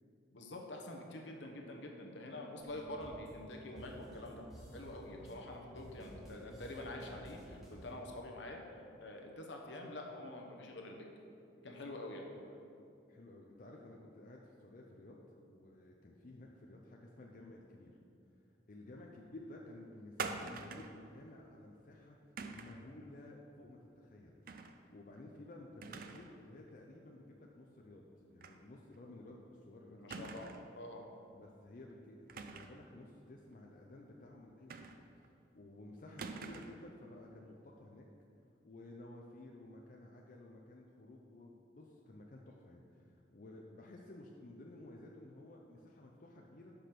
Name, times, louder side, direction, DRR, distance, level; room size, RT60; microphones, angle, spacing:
voice 1, 0.3-4.4 4.7-8.6 9.0-11.1 11.6-12.3 29.9-30.5 30.8-31.1, left 1 dB, 70° left, 1 dB, 0.9 m, -46 dB
sound 1, 2.6-7.9, right 1 dB, ahead, 1.2 m, -53 dB
voice 2, 13.1-18.0 18.7-22.2 22.5-30.3 31.3-38.1 38.6-46.7, left 1 dB, 45° left, -1 dB, 0.5 m, -54 dB
sound 2, 20.2-21.0 22.4-22.8 24.5-24.8 25.2-25.3 25.8-26.4 26.7-26.8 28.4-28.6 28.9-29.0 30.1-30.7 32.3-32.9 34.7-35.3 36.2-36.9, right 4 dB, 50° right, 0.4 m, -45 dB
6.0 x 5.1 x 5.8 m, 2.6 s
head